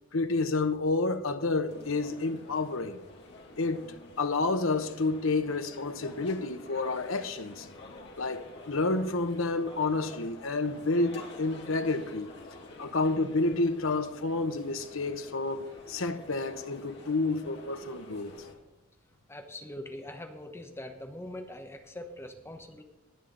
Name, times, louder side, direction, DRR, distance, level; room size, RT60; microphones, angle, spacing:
voice 1, 0.1-3.0 3.6-7.7 8.2-12.3 12.8-18.3, left 3 dB, 70° left, 1.0 m, -30 dB
sound 1, 1.7-18.5, left 2 dB, 55° left, 2.3 m, -49 dB
voice 2, 19.3-22.8, left 1 dB, 10° left, 1.0 m, -42 dB
20.5 x 8.0 x 3.9 m
head